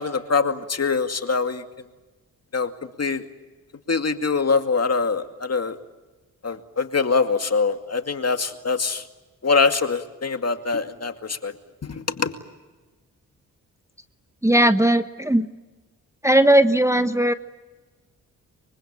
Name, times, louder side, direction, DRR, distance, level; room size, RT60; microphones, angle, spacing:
voice 1, 0.0-1.6 2.5-2.7 3.0-3.3 3.9-5.8 6.4-9.0 9.4-11.5 11.8-12.3, left 4 dB, 40° left, 7 dB, 2.3 m, -23 dB
voice 2, 14.4-15.5 16.2-17.3, right 1 dB, 10° right, 9 dB, 1.2 m, -17 dB
24.0 x 24.0 x 8.8 m, 1.2 s
supercardioid pair, 45°, 38 cm